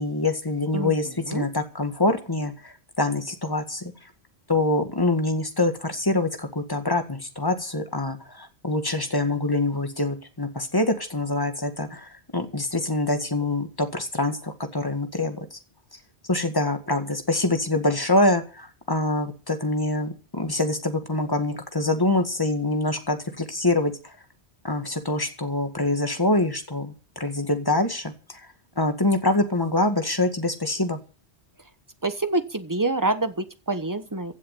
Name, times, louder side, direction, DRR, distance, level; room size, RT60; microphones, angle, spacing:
voice 1, 0.0-3.9 4.5-15.4 16.3-23.9 24.6-28.1 28.8-31.0, left 2 dB, 20° left, 7 dB, 2.0 m, -25 dB
voice 2, 0.7-1.5 32.0-34.3, right 2 dB, 20° right, 11 dB, 1.1 m, -27 dB
16.0 x 7.6 x 8.4 m, 0.35 s
omnidirectional pair, 1.1 m